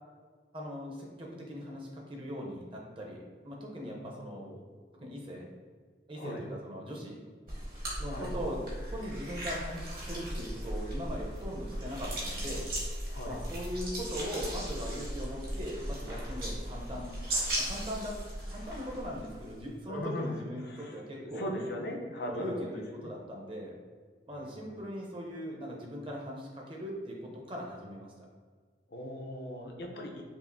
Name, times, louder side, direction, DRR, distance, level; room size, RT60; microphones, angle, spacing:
voice 1, 0.5-4.4 4.9-5.5 6.1-7.2 8.0-8.6 8.9-12.7 13.2-17.1 17.6-21.7 22.2-23.7 24.3-28.3, equal, 30° right, -1 dB, 0.6 m, -40 dB
voice 2, 3.8-4.6 6.1-6.4 8.0-8.3 13.1-13.4 19.9-21.0 21.4-23.1 24.3-24.6 28.9-30.3, left 1 dB, 60° left, 1 dB, 0.5 m, -39 dB
sound 1, 7.5-19.7, right 1 dB, 55° right, 1.1 m, -37 dB
5.5 x 2.5 x 2.6 m, 1.6 s
head